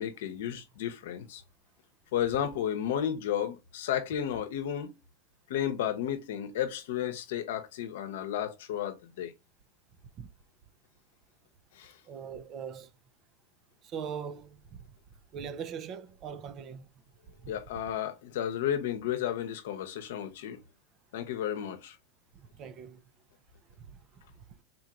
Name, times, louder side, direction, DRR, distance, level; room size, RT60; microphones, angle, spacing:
voice 1, 0.0-1.4 2.1-5.0 5.5-9.3 11.8-11.9 17.5-20.6 21.1-22.0, left 10 dB, 75° left, 0.8 m, -33 dB
voice 2, 12.1-12.9 13.8-14.8 15.3-16.9 17.4-17.5 22.3-23.0 23.8-24.1 24.4-24.5, right 7 dB, 35° right, 0.5 m, -41 dB
4.1 x 2.9 x 2.4 m
supercardioid pair, 135°, 0 cm